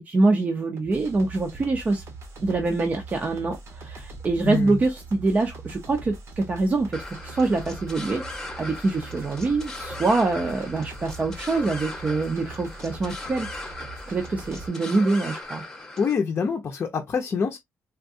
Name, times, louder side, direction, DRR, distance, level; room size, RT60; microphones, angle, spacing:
voice 1, 0.1-2.0 2.4-8.2 8.6-13.5 14.1-15.6, right 3 dB, 30° right, 0.6 m, -25 dB
sound 1, 0.8-14.7, right 3 dB, 55° right, 1.0 m, -42 dB
sound 2, 6.9-16.1, left 2 dB, 10° left, 0.9 m, -38 dB
voice 2, 16.0-17.6, left 6 dB, 40° left, 0.6 m, -25 dB
3.6 x 2.2 x 2.6 m
cardioid pair, 140°, 6 cm